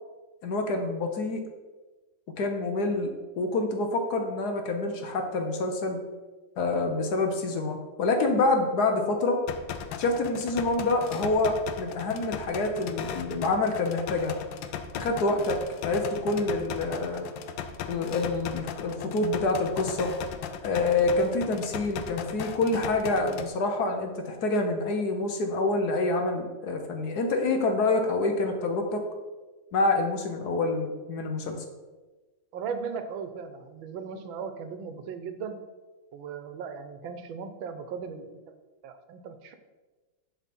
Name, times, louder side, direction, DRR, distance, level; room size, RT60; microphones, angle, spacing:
voice 1, 0.4-1.4 2.4-6.0 6.6-9.4 10.0-14.3 14.9-15.6 15.8-17.3 17.9-20.1 20.6-29.0 29.7-31.6, left 2 dB, 60° left, 4 dB, 1.3 m, -27 dB
sound 1, 9.5-23.5, left 8 dB, 80° left, 1.3 m, -37 dB
voice 2, 32.5-35.6 36.1-38.4 38.8-39.6, right 6 dB, 90° right, 8 dB, 1.6 m, -37 dB
10.5 x 4.4 x 4.2 m, 1.2 s
omnidirectional pair, 2.1 m